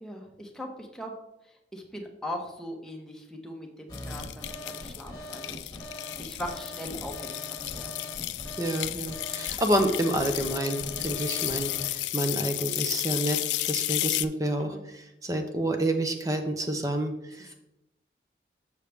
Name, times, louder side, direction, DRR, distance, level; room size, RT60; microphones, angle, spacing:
voice 1, 0.0-1.1 1.7-8.0 14.6-14.8 17.4-17.5, left 1 dB, 5° left, 1 dB, 0.9 m, -40 dB
sound 1, 3.9-14.3, left 16 dB, 85° left, 0.3 m, -33 dB
sound 2, 3.9-11.9, equal, 25° left, 1.2 m, -41 dB
voice 2, 8.6-13.4 13.7-17.1 17.4-17.5, right 1 dB, 20° right, 5 dB, 0.5 m, -29 dB
6.9 x 6.6 x 3.4 m, 0.89 s
head